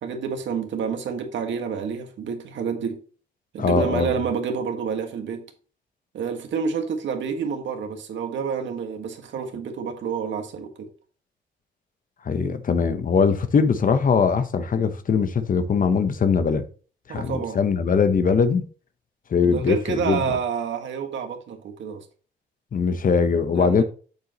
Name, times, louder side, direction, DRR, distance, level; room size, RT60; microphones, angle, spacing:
voice 1, 0.0-3.0 3.5-5.4 6.1-10.9 17.1-17.6 19.4-22.0 23.5-23.8, right 6 dB, 70° right, 1.8 m, -28 dB
voice 2, 3.6-4.1 12.3-16.6 17.1-18.6 19.3-20.3 22.7-23.8, left 5 dB, 45° left, 1.0 m, -21 dB
8.1 x 7.0 x 3.1 m
cardioid pair, 90°, 20 cm